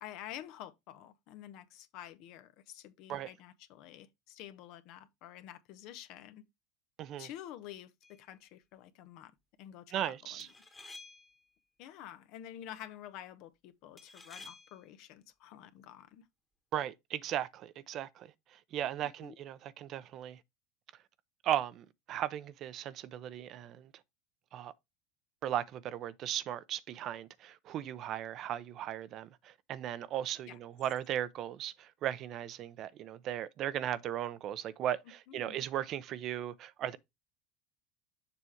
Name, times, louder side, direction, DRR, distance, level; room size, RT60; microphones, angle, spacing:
voice 1, 0.0-6.4 7.2-9.3 9.6-10.5 11.8-16.3 19.0-19.4 30.5-30.6 35.3-35.6, left 11 dB, 60° left, 0.8 m, -49 dB
sound 1, 8.0-8.3 10.4-11.5 14.0-14.9, left 3 dB, 20° left, 1.4 m, -52 dB
voice 2, 9.9-10.5 16.7-20.4 21.4-23.9 24.5-24.7 25.4-37.0, right 11 dB, 50° right, 0.6 m, -37 dB
7.0 x 3.4 x 4.4 m
hypercardioid pair, 100°, 0 cm